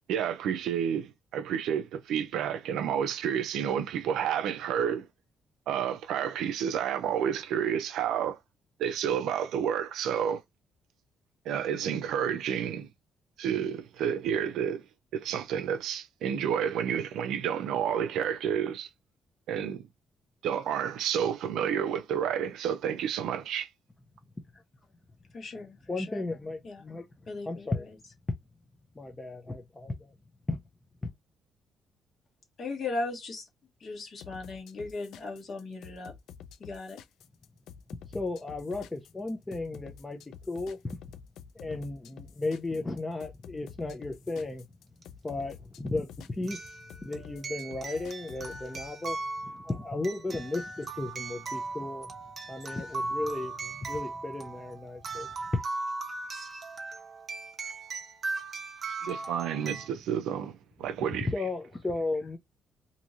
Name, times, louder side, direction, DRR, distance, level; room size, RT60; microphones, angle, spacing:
voice 1, 0.1-5.1 5.7-8.4 8.8-10.4 11.5-12.9 13.4-14.8 15.1-18.9 19.5-19.9 20.4-23.7 59.0-61.3, right 9 dB, 85° right, 0.5 m, -30 dB
voice 2, 25.3-26.2 26.6-26.8 27.3-27.9 32.6-33.5 33.8-36.1 36.6-37.0, left 3 dB, 40° left, 1.2 m, -37 dB
voice 3, 25.9-27.1 27.5-27.9 29.0-30.1 30.5-30.6 31.0-31.1 38.1-41.0 41.5-44.7 45.2-49.2 49.4-52.1 52.5-55.3 61.3-62.4, left 2 dB, 15° left, 0.5 m, -35 dB
sound 1, 34.2-48.9, left 8 dB, 85° left, 0.3 m, -49 dB
sound 2, 45.0-45.1 46.5-59.9, right 3 dB, 30° right, 0.7 m, -38 dB
3.0 x 2.6 x 2.5 m
cardioid pair, 165°, 0 cm